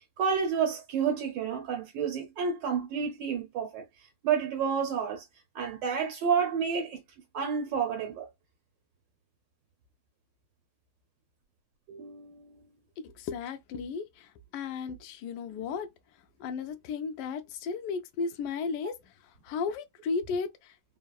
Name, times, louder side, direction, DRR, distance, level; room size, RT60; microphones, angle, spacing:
voice 1, 0.2-3.8 4.2-5.2 5.5-7.0 7.3-8.3 11.9-12.6, right 6 dB, 80° right, 1.4 m, -30 dB
voice 2, 13.0-15.9 16.4-18.9 19.4-20.7, left 5 dB, 75° left, 1.1 m, -34 dB
3.5 x 2.0 x 2.2 m
omnidirectional pair, 2.0 m